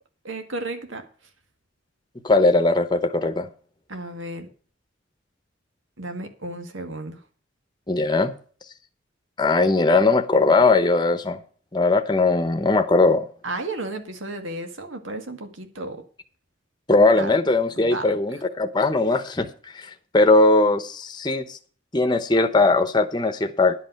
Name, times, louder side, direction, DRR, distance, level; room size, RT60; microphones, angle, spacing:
voice 1, 0.2-1.1 3.9-4.5 6.0-7.2 13.4-16.0 17.1-17.3 17.8-18.1, right 2 dB, 85° right, 6 dB, 1.9 m, -33 dB
voice 2, 2.2-3.5 7.9-8.3 9.4-11.4 11.7-13.2 16.9-19.5 19.7-19.9 20.1-21.6 21.9-23.7, left 3 dB, 20° left, 9 dB, 0.9 m, -19 dB
11.0 x 5.5 x 7.6 m, 0.42 s
head